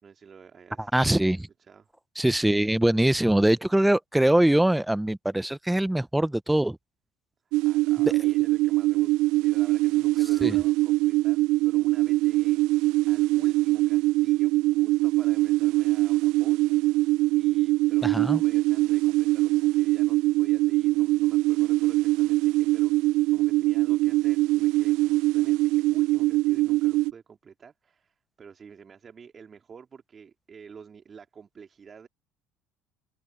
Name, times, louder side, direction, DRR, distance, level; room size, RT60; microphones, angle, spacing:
voice 1, 0.0-0.9 1.6-1.9 7.5-12.6 13.1-16.8 17.4-32.1, right 6 dB, 35° right, 4.1 m, -48 dB
voice 2, 0.9-1.5 2.2-6.8 10.4-10.6 18.0-18.4, right 1 dB, 5° right, 0.9 m, -22 dB
sound 1, 7.5-27.1, right 19 dB, 75° right, 0.7 m, -23 dB
open air
hypercardioid pair, 75°, 0 cm